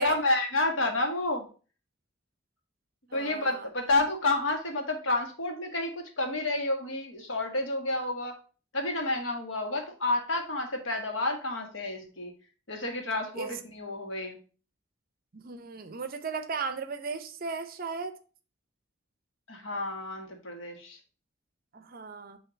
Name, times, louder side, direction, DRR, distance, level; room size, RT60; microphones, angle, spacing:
voice 1, 0.0-1.5 3.1-8.3 8.7-12.3 12.7-14.4 19.5-21.0, left 2 dB, 85° left, 1.6 m, -30 dB
voice 2, 3.1-3.7 13.4-13.5 15.3-18.1 21.7-22.4, right 5 dB, 50° right, 0.7 m, -36 dB
6.5 x 2.9 x 5.7 m
head